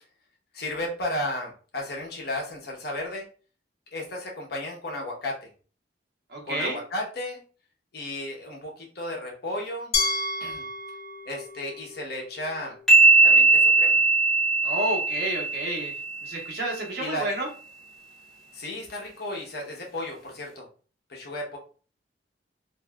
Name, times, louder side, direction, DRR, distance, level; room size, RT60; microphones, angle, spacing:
voice 1, 0.5-3.2 3.9-5.5 6.4-7.4 7.9-10.0 10.4-10.7 11.3-12.8 13.2-14.0 17.0-17.3 18.5-20.7 21.1-21.6, left 1 dB, 65° left, -1 dB, 0.9 m, -34 dB
voice 2, 6.3-6.8 14.6-15.9 16.2-17.5, right 1 dB, 65° right, -1 dB, 1.0 m, -30 dB
Glass, 9.9-12.8, left 3 dB, 85° left, 0.6 m, -31 dB
sound 1, 12.9-16.4, right 3 dB, ahead, 0.7 m, -19 dB
3.0 x 2.6 x 2.3 m, 0.40 s
head